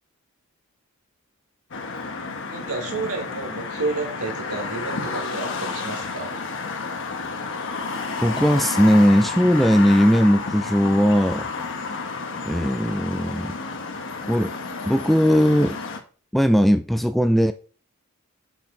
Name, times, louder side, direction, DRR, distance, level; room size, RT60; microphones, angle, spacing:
sound 1, 1.7-16.0, left 4 dB, 60° left, 1.2 m, -31 dB
voice 1, 2.5-6.4, right 3 dB, 70° right, 2.0 m, -30 dB
voice 2, 8.2-11.5 12.4-13.6 14.3-14.5 14.8-15.8 16.3-17.5, equal, ahead, 0.3 m, -18 dB
5.8 x 4.6 x 5.3 m
head